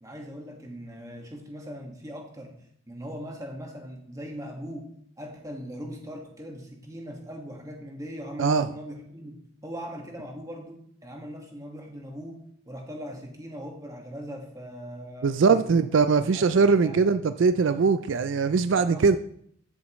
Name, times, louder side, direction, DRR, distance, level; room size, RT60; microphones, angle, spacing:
voice 1, 0.0-2.6 2.9-4.9 5.2-12.4 12.6-17.0 17.6-17.8 18.7-19.2, equal, 15° right, 1 dB, 1.7 m, -40 dB
voice 2, 15.2-19.2, right 5 dB, 65° right, 11 dB, 0.4 m, -21 dB
14.0 x 7.1 x 3.1 m, 0.66 s
head